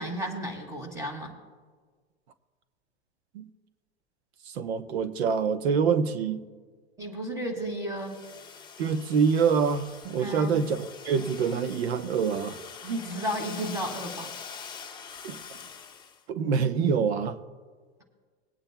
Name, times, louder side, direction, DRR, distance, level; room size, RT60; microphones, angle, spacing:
voice 1, 0.0-1.3 7.0-8.2 10.2-10.6 12.8-14.3, right 1 dB, 10° right, 2.4 m, -33 dB
voice 2, 4.5-6.4 8.8-12.6 15.2-15.6 16.3-17.4, right 6 dB, 65° right, 1.0 m, -26 dB
Domestic sounds home sounds, 8.0-16.2, left 6 dB, 15° left, 1.0 m, -44 dB
22.5 x 8.9 x 2.3 m
hypercardioid pair, 110°, 34 cm